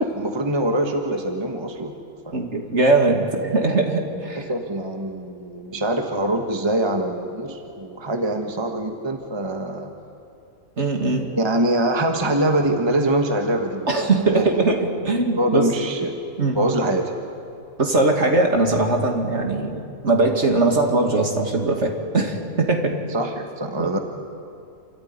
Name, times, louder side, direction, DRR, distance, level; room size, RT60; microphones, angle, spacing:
voice 1, 0.1-2.0 2.2-2.4 4.3-9.9 11.4-14.7 15.4-16.1 16.5-17.1 23.1-24.0, right 1 dB, 20° right, 4 dB, 1.3 m, -24 dB
voice 2, 2.3-4.4 10.8-11.3 13.9-15.7 16.4-16.7 17.8-23.0 23.8-24.0, right 2 dB, 50° right, 3 dB, 2.6 m, -21 dB
27.5 x 14.0 x 9.6 m, 2.6 s
omnidirectional pair, 1.5 m